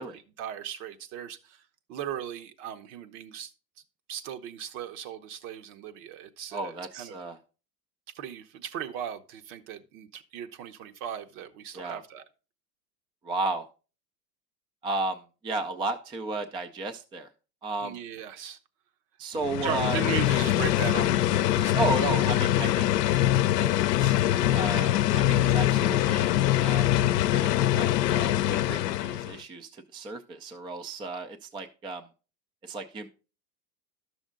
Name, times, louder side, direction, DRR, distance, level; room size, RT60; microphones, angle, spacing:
voice 1, 0.0-1.6 1.9-3.5 4.1-7.2 8.1-12.2 17.8-18.6 19.6-23.3, right 9 dB, 55° right, 1.1 m, -38 dB
voice 2, 6.5-7.4 11.7-12.0 13.2-13.7 14.8-17.3 17.6-18.0 19.2-20.0 21.7-22.9 23.6-26.9 27.3-32.0 32.6-33.1, right 3 dB, 10° right, 0.4 m, -34 dB
sound 1, 19.4-29.4, left 13 dB, 75° left, 0.7 m, -24 dB
11.5 x 6.3 x 3.8 m
hypercardioid pair, 100°, 49 cm